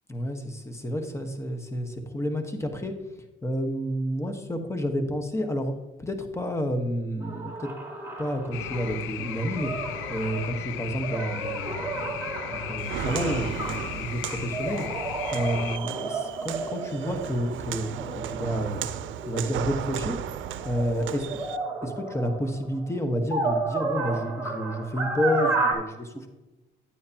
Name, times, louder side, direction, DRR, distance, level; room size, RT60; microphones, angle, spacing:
voice 1, 0.1-2.9 3.4-5.7 6.0-7.7 8.2-9.7 10.1-14.9 15.3-18.8 19.2-20.2 20.6-21.3 21.8-26.3, equal, 15° left, 5 dB, 1.3 m, -30 dB
sound 1, 7.2-19.9 20.4-25.7, right 3 dB, 10° right, 3.0 m, -33 dB
sound 2, 8.5-15.8, left 13 dB, 85° left, 0.4 m, -36 dB
Walk footsteps, 12.8-21.6, right 10 dB, 75° right, 0.6 m, -35 dB
10.5 x 9.2 x 2.9 m, 1.1 s
cardioid pair, 90°, 20 cm